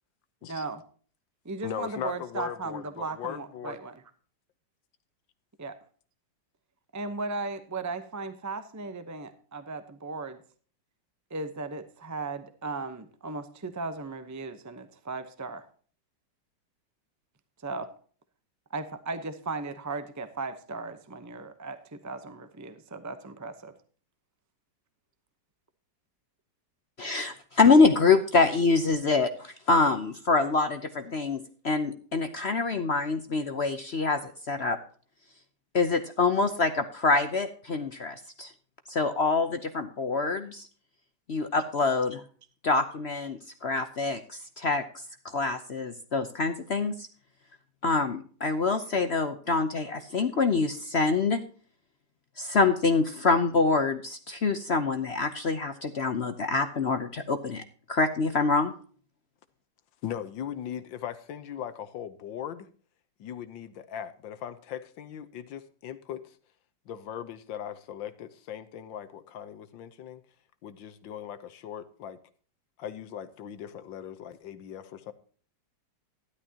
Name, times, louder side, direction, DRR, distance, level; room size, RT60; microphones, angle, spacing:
voice 1, 0.5-0.8 1.4-4.0 5.6-5.8 6.9-10.4 11.3-15.7 17.6-17.9 18.7-23.7, right 3 dB, 25° right, 0.3 m, -36 dB
voice 2, 1.6-3.8 60.0-62.7 63.2-66.4 66.9-70.2 70.6-72.2 72.8-75.1, left 9 dB, 80° left, 1.6 m, -39 dB
voice 3, 27.0-34.8 35.7-38.5 38.9-40.7 41.3-42.2 42.6-44.8 45.2-47.1 47.8-51.4 52.4-57.6 57.9-58.7, left 4 dB, 55° left, 0.7 m, -25 dB
13.0 x 11.5 x 2.8 m
omnidirectional pair, 2.0 m